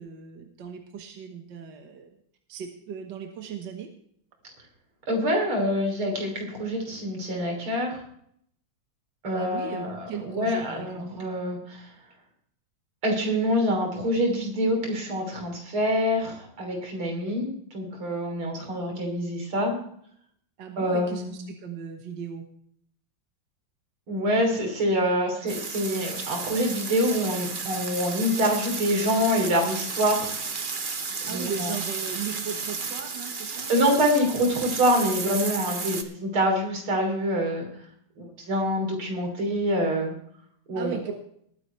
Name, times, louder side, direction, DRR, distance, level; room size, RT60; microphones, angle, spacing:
voice 1, 0.0-2.2 2.5-3.9 9.3-11.1 20.6-22.5 31.3-33.7 40.8-41.1, right 7 dB, 60° right, 4 dB, 1.9 m, -37 dB
voice 2, 5.1-8.0 9.2-11.9 13.0-19.8 20.8-21.3 24.1-30.3 31.2-31.7 33.5-37.7 38.2-40.1 40.7-41.1, equal, 85° right, 2 dB, 4.2 m, -26 dB
sound 1, 25.5-36.0, right 4 dB, 35° right, 0.8 m, -33 dB
20.0 x 9.7 x 3.3 m, 0.66 s
omnidirectional pair, 2.3 m